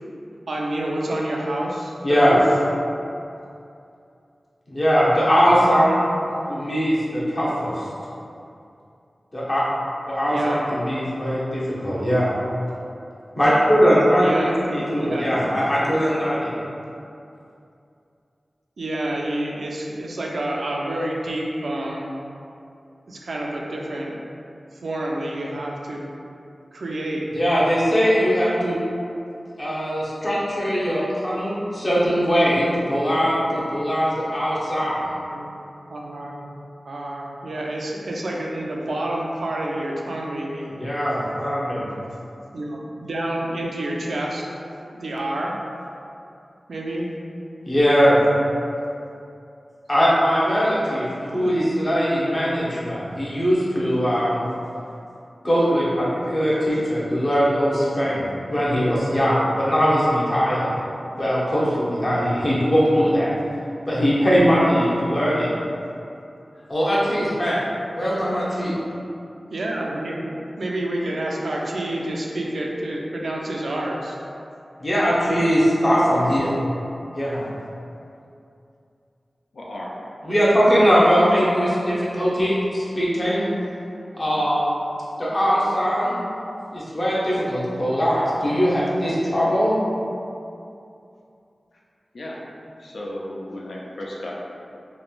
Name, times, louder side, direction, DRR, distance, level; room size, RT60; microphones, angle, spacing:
voice 1, 0.5-2.4 10.3-10.7 14.2-15.3 18.8-22.1 23.1-24.1 24.8-26.0 26.7-27.3 35.3-35.5 35.9-36.5 36.8-40.7 42.5-44.4 44.9-45.5 46.7-47.1 56.7-56.8 69.5-74.2, right 1 dB, 85° right, -2 dB, 0.3 m, -28 dB
voice 2, 2.0-2.4 4.7-6.2 6.5-7.9 9.3-9.6 10.1-12.4 13.4-14.3 14.6-16.5 27.3-28.8 29.6-35.1 40.7-41.9 47.6-48.2 49.9-54.4 55.4-60.7 61.2-63.3 63.9-65.5 66.7-67.6 67.9-68.8 74.8-76.5 77.1-77.4 80.2-83.5 84.1-84.7 85.2-86.2 86.7-89.8, equal, 40° left, -8 dB, 0.7 m, -20 dB
voice 3, 77.2-77.5 79.5-80.0 92.1-92.4 92.8-94.4, left 1 dB, 85° left, -4 dB, 0.3 m, -34 dB
3.0 x 2.1 x 2.4 m, 2.6 s
wide cardioid pair, 85°, 0 cm